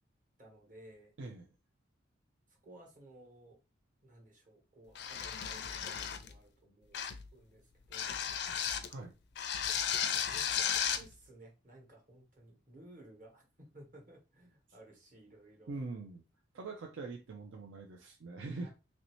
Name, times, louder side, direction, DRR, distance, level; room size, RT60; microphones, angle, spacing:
voice 1, 0.4-1.1 2.5-3.6 4.0-7.0 7.3-8.2 9.8-15.7 18.6-18.7, right 1 dB, 40° right, 0 dB, 1.1 m, -57 dB
sound 1, 4.9-6.3 6.9-7.3 7.9-8.9 9.3-11.1, left 8 dB, 60° left, 0.4 m, -34 dB
voice 2, 15.7-16.2 16.5-18.7, right 3 dB, 75° right, 2 dB, 0.5 m, -43 dB
3.1 x 2.7 x 3.0 m, 0.29 s
head